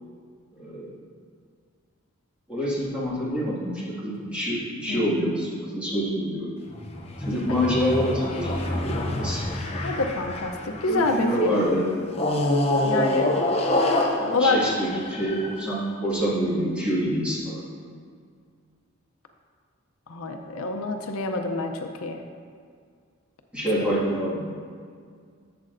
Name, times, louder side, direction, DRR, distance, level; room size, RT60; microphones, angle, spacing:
voice 1, 0.5-0.9 2.5-6.5 7.2-9.4 10.9-11.8 14.2-17.6 23.5-24.5, equal, 5° right, -8 dB, 1.8 m, -26 dB
sound 1, 6.7-11.3 12.1-15.7, left 1 dB, 30° left, 0.6 m, -27 dB
voice 2, 9.8-11.6 12.8-13.3 14.3-14.6 20.1-22.2, left 3 dB, 75° left, 5 dB, 0.6 m, -27 dB
11.5 x 7.3 x 2.6 m, 2.1 s
head